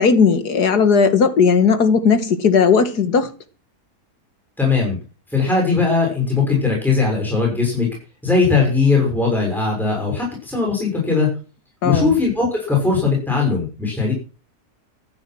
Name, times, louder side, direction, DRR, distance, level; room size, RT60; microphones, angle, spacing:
voice 1, 0.0-3.3 11.8-12.1, left 5 dB, 80° left, 2.2 m, -16 dB
voice 2, 4.6-5.0 5.3-7.9 8.2-11.3 11.8-14.1, left 4 dB, ahead, 6.6 m, -19 dB
14.0 x 11.0 x 6.2 m
omnidirectional pair, 1.7 m